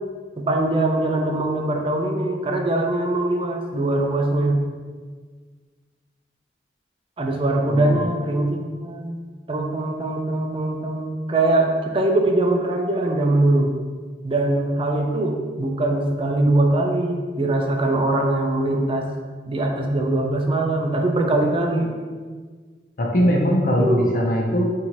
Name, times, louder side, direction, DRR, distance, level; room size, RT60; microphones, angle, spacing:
voice 1, 0.4-4.6 7.2-9.2 9.5-13.7 14.2-19.1 19.5-21.9 23.8-24.0, right 2 dB, 30° right, 2 dB, 0.4 m, -22 dB
voice 2, 23.0-24.7, equal, 50° left, -1 dB, 0.6 m, -20 dB
4.1 x 2.7 x 3.0 m, 1.5 s
head